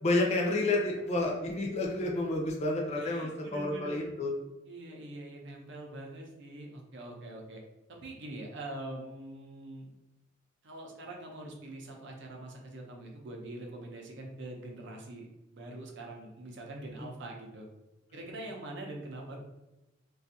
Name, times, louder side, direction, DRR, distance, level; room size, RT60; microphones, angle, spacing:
voice 1, 0.0-4.3 17.0-17.1, left 2 dB, 35° left, 0 dB, 0.4 m, -30 dB
voice 2, 2.9-4.2 4.6-7.6 7.9-9.9 10.6-17.7 18.1-19.4, right 1 dB, 65° right, 0 dB, 0.6 m, -44 dB
2.5 x 2.3 x 2.6 m, 0.97 s
head